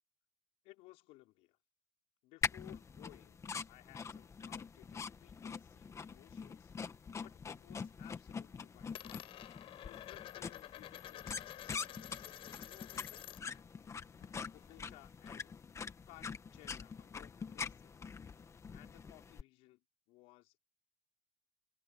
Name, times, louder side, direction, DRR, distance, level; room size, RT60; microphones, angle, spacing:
voice 1, 0.6-1.6 2.2-6.7 7.0-9.2 9.8-11.3 11.7-13.5 14.5-15.6 16.0-18.1 18.7-20.6, left 20 dB, 80° left, 5.3 m, -60 dB
sound 1, 2.4-19.4, left 5 dB, 30° left, 1.9 m, -45 dB
Coin (dropping), 6.1-7.2 7.5-8.0 8.3-13.6 13.9-15.6, left 13 dB, 60° left, 6.5 m, -51 dB
cardioid pair, 115°, 10 cm